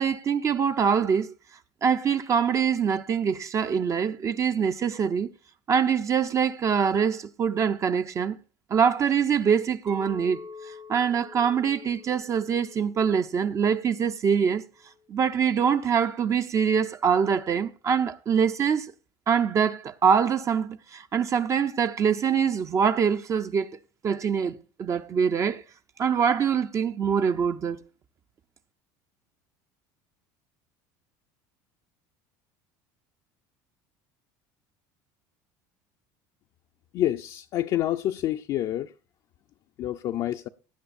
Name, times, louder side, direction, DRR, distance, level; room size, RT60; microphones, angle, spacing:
voice 1, 0.0-1.3 1.8-5.3 5.7-8.4 8.7-10.4 10.9-14.7 15.1-18.9 19.3-23.7 24.0-25.6 26.0-27.8, right 7 dB, 35° right, 0.5 m, -24 dB
Chink clink, 9.9-14.2 14.7-15.0, left 3 dB, 85° right, 3.8 m, -47 dB
voice 2, 36.9-38.9 39.8-40.5, left 12 dB, 50° left, 0.5 m, -27 dB
17.5 x 10.0 x 2.5 m
supercardioid pair, 115°, 9 cm